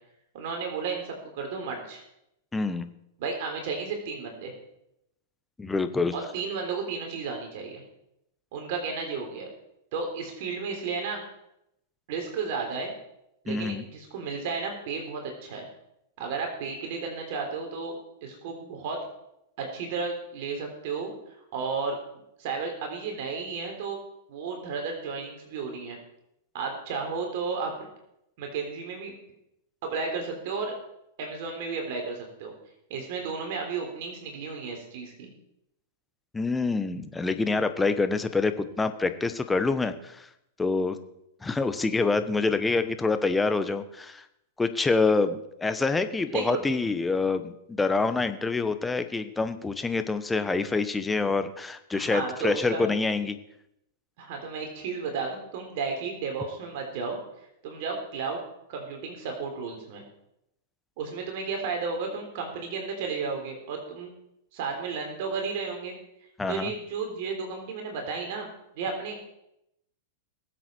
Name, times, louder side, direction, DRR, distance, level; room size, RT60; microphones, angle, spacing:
voice 1, 0.3-2.0 3.2-4.5 6.1-7.8 8.5-9.5 9.9-11.2 12.1-12.9 13.4-15.7 16.2-18.0 18.2-19.0 19.6-21.1 21.5-22.0 22.4-24.0 24.3-26.0 26.5-27.9 28.4-29.1 29.8-30.7 31.2-32.5 32.9-35.3 46.3-46.6 51.9-52.9 54.2-57.2 57.6-58.4 58.7-60.0 61.0-64.1 64.5-66.0 66.5-68.5 68.8-69.2, right 5 dB, 60° right, 2 dB, 3.6 m, -33 dB
voice 2, 2.5-2.9 5.6-6.1 13.5-13.8 36.3-40.3 40.6-41.0 41.4-44.2 44.6-53.4 66.4-66.7, left 3 dB, 10° left, 10 dB, 1.2 m, -26 dB
21.0 x 7.9 x 4.6 m, 0.82 s
hypercardioid pair, 110°, 0 cm